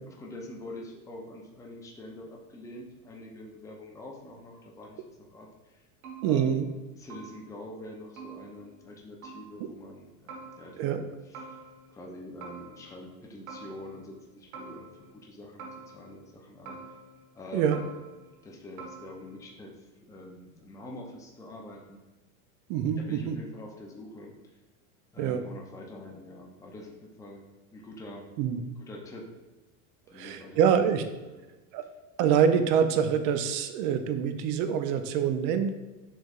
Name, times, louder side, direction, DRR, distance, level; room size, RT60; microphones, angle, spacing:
voice 1, 0.1-5.8 6.2-6.7 6.9-11.6 11.9-16.8 17.3-17.8 18.4-19.8 20.0-22.0 23.0-24.3 25.1-27.4 27.7-28.3 28.8-29.3 30.1-30.8 31.3-31.5, left 1 dB, 5° left, -1 dB, 0.5 m, -45 dB
sound 1, 6.0-6.8 7.1-7.7 8.2-9.0 9.2-9.8 10.3-11.0 11.3-12.1 12.4-13.2 13.5-14.2 14.5-15.3 15.6-16.3 16.7-17.4 17.7-18.5 18.8-19.5, right 4 dB, 70° right, 1.3 m, -47 dB
voice 2, 6.2-6.6 10.8-11.0 17.5-17.8 22.7-23.4 25.2-25.4 28.4-28.6 30.1-31.0 31.7-31.8 32.2-35.8, right 8 dB, 50° right, 9 dB, 0.5 m, -25 dB
6.4 x 3.4 x 2.4 m, 1.1 s
supercardioid pair, 120°, 44 cm